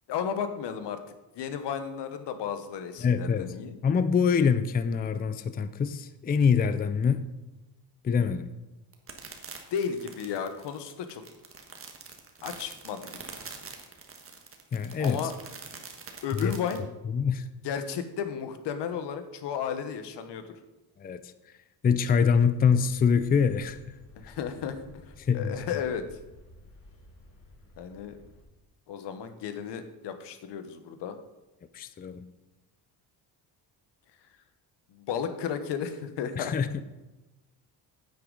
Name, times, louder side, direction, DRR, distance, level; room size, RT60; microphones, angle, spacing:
voice 1, 0.1-1.0 1.3-3.7 9.7-11.2 12.4-13.2 15.0-15.3 16.2-16.8 17.6-20.5 24.2-26.1 27.8-28.2 28.9-31.2 34.9-36.5, left 7 dB, 75° left, 1.2 m, -34 dB
voice 2, 3.0-3.5 3.8-7.2 8.0-8.5 14.7-15.3 16.4-16.5 17.1-17.5 21.0-21.2 21.8-23.8 25.2-25.6 31.7-32.3 36.4-36.8, left 6 dB, 25° left, 0.4 m, -25 dB
sound 1, 8.9-16.8, right 5 dB, 30° right, 1.5 m, -44 dB
sound 2, 22.8-28.4, left 2 dB, 55° left, 3.8 m, -53 dB
9.6 x 8.6 x 3.9 m
cardioid pair, 115°, 41 cm